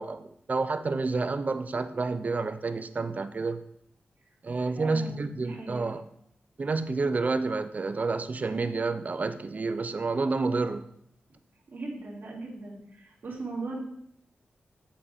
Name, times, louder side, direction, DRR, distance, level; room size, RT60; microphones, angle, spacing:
voice 1, 0.0-3.6 4.4-6.0 6.6-10.9, right 3 dB, 40° right, 10 dB, 0.6 m, -29 dB
voice 2, 4.7-5.9 11.7-13.8, right 3 dB, 60° right, -5 dB, 2.9 m, -39 dB
7.6 x 7.0 x 3.6 m, 0.72 s
wide cardioid pair, 100°, 4 cm